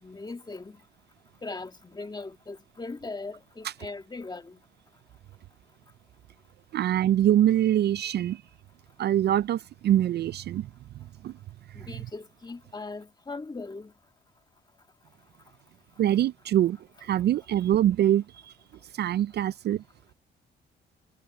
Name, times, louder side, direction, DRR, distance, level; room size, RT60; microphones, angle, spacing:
voice 1, 0.0-0.8 1.4-4.6 11.7-13.9, left 3 dB, 20° left, 1.9 m, -39 dB
voice 2, 6.7-8.4 9.0-10.7 11.2-11.3 11.7-11.8 16.0-18.5 18.9-19.8, right 11 dB, 55° right, 0.4 m, -24 dB
cardioid pair, 90°, 20 cm